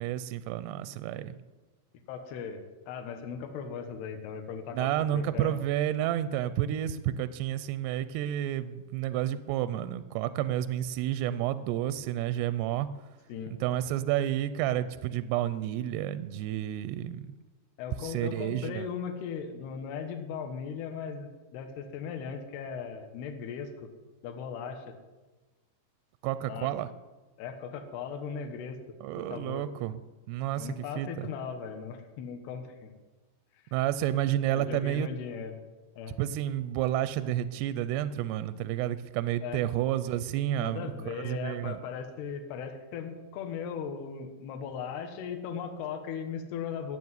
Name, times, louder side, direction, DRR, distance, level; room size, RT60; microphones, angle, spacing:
voice 1, 0.0-1.4 4.7-12.9 13.6-17.3 18.0-18.9 26.2-26.9 29.0-29.9 30.3-31.3 33.7-35.1 36.2-41.8, right 12 dB, 85° right, 14 dB, 2.4 m, -30 dB
voice 2, 2.1-5.5 13.3-13.5 17.8-23.9 24.2-24.9 26.5-26.7 27.4-28.8 29.3-29.6 30.6-32.9 33.6-33.7 34.5-35.6 36.0-36.2 39.4-39.6 40.6-47.0, left 6 dB, 70° left, 5 dB, 3.2 m, -38 dB
14.5 x 8.1 x 9.5 m, 1.2 s
omnidirectional pair, 5.2 m